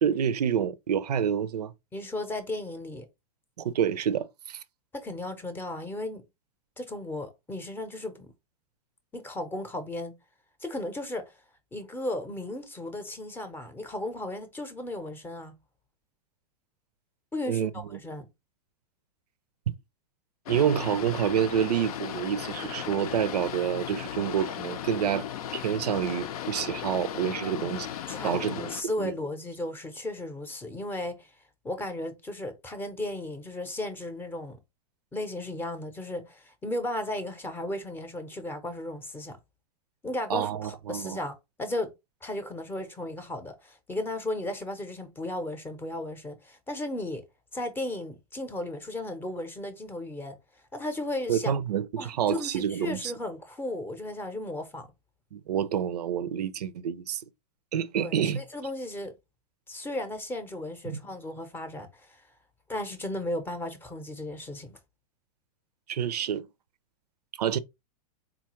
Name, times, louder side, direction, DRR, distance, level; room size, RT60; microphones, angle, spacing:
voice 1, 0.0-1.7 3.6-4.6 17.5-17.7 19.7-19.8 20.5-25.3 25.5-27.9 28.2-29.1 40.3-41.2 51.3-53.1 55.3-57.2 57.7-58.4 60.9-61.0 65.9-66.5 67.4-67.6, right 9 dB, 90° right, 0.5 m, -28 dB
voice 2, 1.9-3.1 4.9-6.2 6.8-8.3 9.1-10.2 10.6-11.4 11.7-15.5 17.3-18.3 27.4-27.5 28.1-31.3 31.6-34.6 35.1-39.4 40.0-41.9 42.2-47.2 47.5-50.4 50.7-51.6 52.0-54.9 58.0-59.1 59.7-62.2 62.7-64.8, left 1 dB, 10° left, 0.6 m, -35 dB
Boat Water vehicle, 20.5-28.8, left 10 dB, 70° left, 0.6 m, -36 dB
4.0 x 2.3 x 2.9 m
hypercardioid pair, 130°, 20 cm